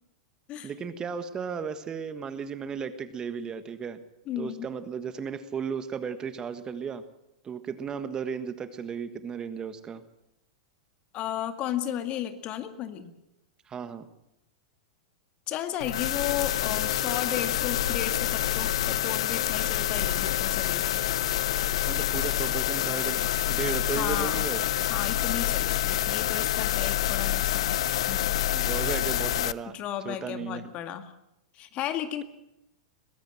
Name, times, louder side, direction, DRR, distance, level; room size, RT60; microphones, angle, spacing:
voice 1, 0.6-4.0 4.4-7.0 7.4-10.0 13.7-14.1 21.9-24.6 28.5-29.7 30.0-30.6, right 6 dB, 25° right, 11 dB, 1.5 m, -35 dB
voice 2, 4.3-4.7 11.1-13.1 15.5-21.0 23.9-24.5 24.9-28.4 29.7-31.1 31.5-32.2, left 11 dB, 40° left, 9 dB, 2.0 m, -34 dB
sound 1, 15.8-29.5, left 12 dB, 70° left, 0.7 m, -27 dB
22.0 x 15.5 x 7.9 m, 0.85 s
hypercardioid pair, 110°, 3 cm